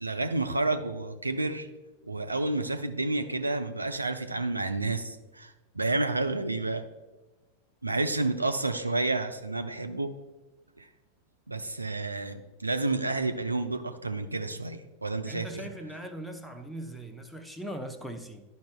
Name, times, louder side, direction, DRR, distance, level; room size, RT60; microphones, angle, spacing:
voice 1, 0.0-1.7 2.1-6.9 7.8-10.2 10.8-10.9 11.5-15.7, right 2 dB, 80° right, 0.4 m, -30 dB
voice 2, 15.2-18.4, right 1 dB, ahead, 0.7 m, -40 dB
11.5 x 5.3 x 2.2 m
figure-of-eight pair, 90°, 0 cm